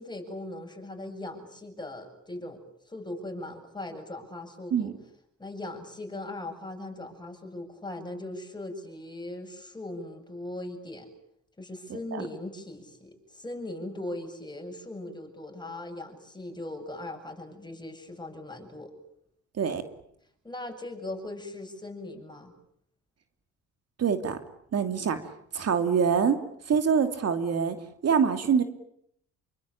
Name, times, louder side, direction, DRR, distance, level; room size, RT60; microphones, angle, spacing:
voice 1, 0.0-2.6 2.9-4.9 5.4-11.1 11.6-18.9 20.4-22.5, left 1 dB, 15° left, 5 dB, 7.8 m, -39 dB
voice 2, 24.0-24.4 24.7-25.2 25.5-26.4 26.7-27.8 28.0-28.6, right 6 dB, 55° right, 7 dB, 2.8 m, -24 dB
28.0 x 24.0 x 8.8 m, 0.71 s
cardioid pair, 90°, 30 cm